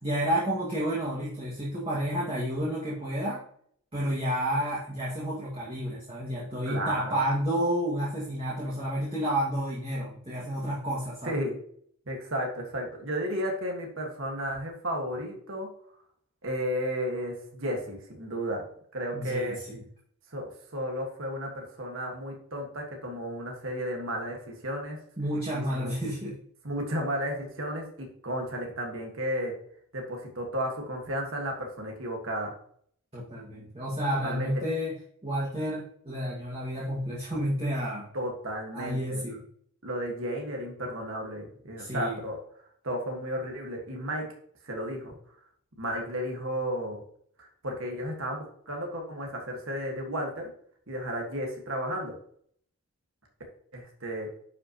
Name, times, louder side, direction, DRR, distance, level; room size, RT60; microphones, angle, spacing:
voice 1, 0.0-3.4 3.9-11.4 19.1-19.8 25.2-26.3 33.1-34.9 35.2-38.1 38.7-39.4 41.8-42.2, equal, 25° right, -7 dB, 1.8 m, -30 dB
voice 2, 6.6-7.2 11.2-11.6 12.1-15.7 16.4-18.6 18.9-19.6 20.3-25.0 25.7-25.9 26.6-29.5 29.9-32.5 34.2-34.5 38.1-39.4 39.8-42.4 42.8-44.3 44.6-45.2 45.8-47.0 47.4-50.5 50.9-52.1 53.7-54.3, equal, 60° right, 1 dB, 1.6 m, -33 dB
10.5 x 5.4 x 2.9 m, 0.63 s
head